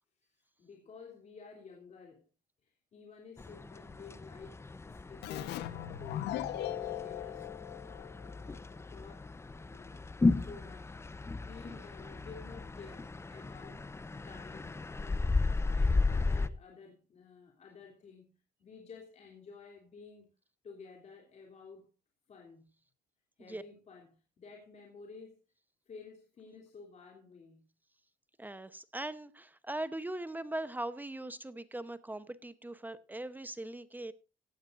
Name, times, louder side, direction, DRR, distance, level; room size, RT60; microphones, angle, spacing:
voice 1, 0.6-2.3 2.6-7.5 7.8-13.8 14.2-15.3 15.7-20.3 20.6-21.9 22.3-22.7 23.4-25.4 25.9-27.7, left 5 dB, 40° left, 3.3 m, -53 dB
sound 1, 3.4-16.5, left 3 dB, 15° left, 0.8 m, -35 dB
Keyboard (musical), 5.2-8.6, left 12 dB, 80° left, 1.1 m, -39 dB
voice 2, 28.4-34.1, right 1 dB, 10° right, 0.9 m, -40 dB
15.5 x 15.5 x 2.6 m
cardioid pair, 110°, 17 cm